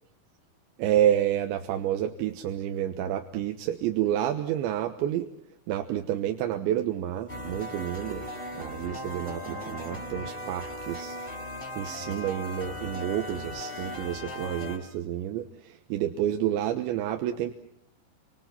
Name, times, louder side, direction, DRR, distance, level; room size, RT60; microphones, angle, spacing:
voice 1, 0.8-5.3 5.7-8.2 8.5-11.2 11.8-17.5, right 11 dB, 85° right, 6 dB, 3.5 m, -29 dB
sound 1, 7.3-14.8, left 1 dB, 10° left, 5.0 m, -38 dB
29.5 x 25.5 x 5.9 m, 0.73 s
omnidirectional pair, 5.1 m